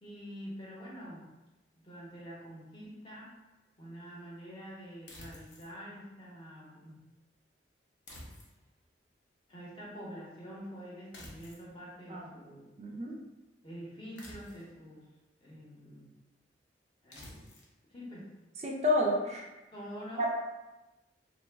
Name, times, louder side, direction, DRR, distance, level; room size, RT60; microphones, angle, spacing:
voice 1, 0.0-1.3 1.7-3.3 3.8-7.0 9.5-12.6 13.6-15.1 15.4-16.1 17.0-17.5 17.9-18.3 19.7-20.2, equal, 25° left, -5 dB, 0.8 m, -46 dB
sound 1, 5.1-5.7 8.1-8.8 11.1-11.7 14.2-14.8 17.1-17.7, left 1 dB, 70° left, 0.7 m, -50 dB
voice 2, 12.8-13.2 18.6-19.5 20.2-20.4, left 1 dB, 35° right, -1 dB, 0.3 m, -30 dB
2.9 x 2.0 x 3.3 m, 1.0 s
head